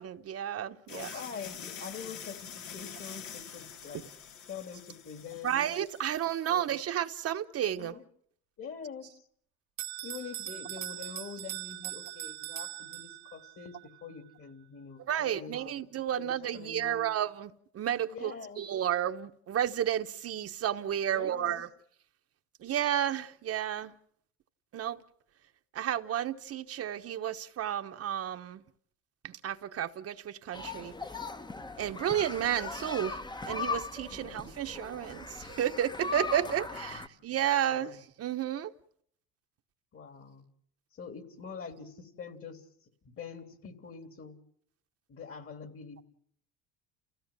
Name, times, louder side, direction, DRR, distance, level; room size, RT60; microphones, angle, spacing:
voice 1, 0.0-1.1 5.4-7.9 15.1-17.5 17.7-18.3 18.6-21.7 22.6-23.9 24.7-25.0 25.7-28.6 29.4-30.9 31.8-33.2 33.5-38.7, right 10 dB, 50° right, 1.1 m, -32 dB
sound 1, 0.9-6.6, left 7 dB, 70° left, 2.0 m, -46 dB
voice 2, 0.9-4.0 4.5-5.7 6.4-6.6 7.7-8.0 8.6-9.1 10.0-15.8 16.1-17.1 18.1-18.6 21.1-21.6 34.1-34.5 36.7-37.2 37.7-38.0 39.9-40.4 40.9-42.6 43.0-44.4 45.1-46.0, left 6 dB, 45° left, 3.3 m, -45 dB
Bell, 9.8-13.5, right 17 dB, 85° right, 1.3 m, -40 dB
sound 2, 30.5-37.1, left 4 dB, 15° left, 1.0 m, -39 dB
29.0 x 16.0 x 7.5 m
supercardioid pair, 85°, 31 cm